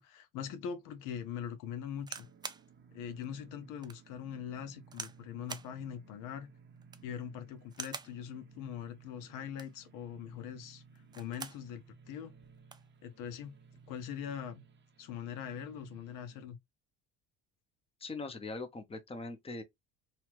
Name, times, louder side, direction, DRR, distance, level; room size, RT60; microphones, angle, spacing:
voice 1, 0.0-2.3 2.9-6.5 7.0-10.8 11.1-12.3 13.0-13.5 13.9-14.6 15.0-16.6, left 8 dB, 70° left, 0.7 m, -42 dB
sound 1, 2.0-2.7 3.2-3.3 3.8-4.0 4.9-5.2 5.5-5.7 6.8-7.1 7.7-8.2 9.4-9.8 10.9-11.6 12.1-12.2 12.4-12.9 13.7-14.0, right 4 dB, 15° right, 0.3 m, -45 dB
sound 2, 2.1-16.4, right 5 dB, 35° right, 0.7 m, -59 dB
voice 2, 18.0-19.6, left 3 dB, 15° left, 0.8 m, -41 dB
2.8 x 2.4 x 3.0 m
supercardioid pair, 85°, 33 cm